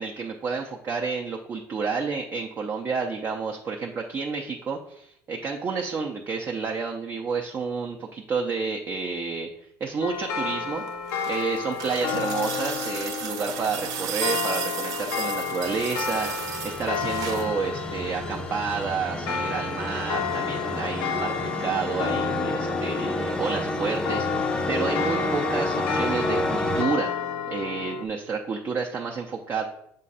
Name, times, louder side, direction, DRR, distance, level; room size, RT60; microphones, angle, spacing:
voice 1, 0.0-9.5 9.8-10.8 11.3-21.3 21.6-27.1 27.5-29.7, right 5 dB, 30° right, 0 dB, 0.6 m, -30 dB
sound 1, 10.0-28.1, left 6 dB, 80° left, 0.6 m, -31 dB
sound 2, 10.8-17.5 18.8-18.9, right 8 dB, 60° right, 0.9 m, -34 dB
sound 3, 15.3-26.8, left 2 dB, 10° left, 0.5 m, -30 dB
7.4 x 2.5 x 5.5 m, 0.76 s
cardioid pair, 135°, 7 cm